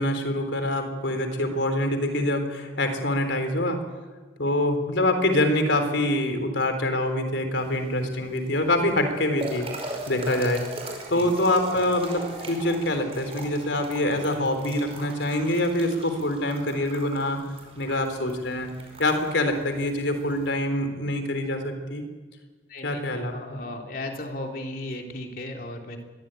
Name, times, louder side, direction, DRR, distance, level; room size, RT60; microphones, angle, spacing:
voice 1, 0.0-3.8 4.4-9.7 10.1-10.7 11.1-17.4 17.8-18.7 19.0-22.0 22.8-23.6, left 1 dB, 80° left, 7 dB, 3.8 m, -25 dB
sound 1, 7.5-20.5, right 2 dB, 30° right, 5.2 m, -40 dB
voice 2, 22.7-23.0 23.3-26.0, left 1 dB, 50° left, 2 dB, 3.3 m, -35 dB
23.5 x 20.0 x 9.1 m, 1.4 s
head